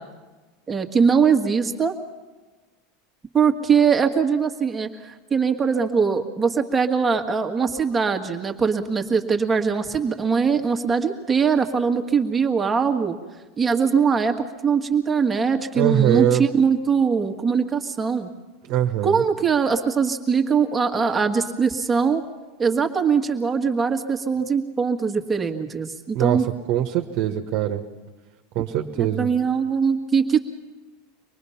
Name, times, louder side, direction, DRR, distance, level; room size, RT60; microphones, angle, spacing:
voice 1, 0.7-1.9 3.3-13.2 13.6-14.3 14.6-18.3 19.0-22.2 22.6-26.4 29.0-30.4, right 6 dB, 20° right, 4 dB, 1.7 m, -21 dB
voice 2, 15.7-16.5 18.7-19.2 26.1-27.8 28.5-29.3, right 11 dB, 55° right, 4 dB, 1.3 m, -22 dB
25.0 x 19.5 x 5.8 m, 1.2 s
supercardioid pair, 110°, 0 cm